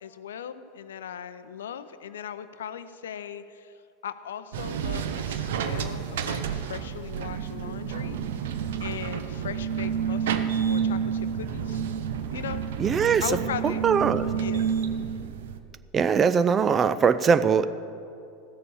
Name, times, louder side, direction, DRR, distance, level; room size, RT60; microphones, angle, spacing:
voice 1, 0.0-3.7 4.0-11.8 12.3-12.6 13.2-13.9 14.4-14.7, left 8 dB, 75° left, 12 dB, 0.6 m, -38 dB
sound 1, 4.5-15.6, right 7 dB, 70° right, 0.7 m, -29 dB
voice 2, 12.8-13.2 13.8-14.3 15.9-17.7, right 6 dB, 30° right, 13 dB, 0.5 m, -21 dB
15.0 x 6.8 x 7.0 m, 2.6 s
hypercardioid pair, 85°, 0 cm